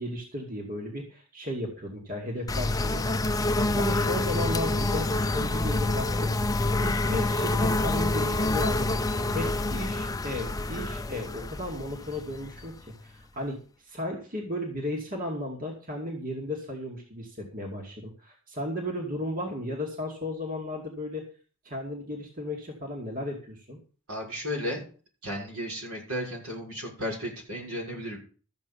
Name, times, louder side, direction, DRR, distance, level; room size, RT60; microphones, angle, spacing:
voice 1, 0.0-6.3 6.8-21.3 21.6-23.8, left 1 dB, 40° right, 0 dB, 2.4 m, -35 dB
sound 1, 2.5-13.1, left 2 dB, 15° left, 0.5 m, -27 dB
voice 2, 24.1-24.8 25.2-28.2, equal, 85° right, -1 dB, 6.3 m, -34 dB
13.5 x 7.8 x 5.6 m, 0.39 s
head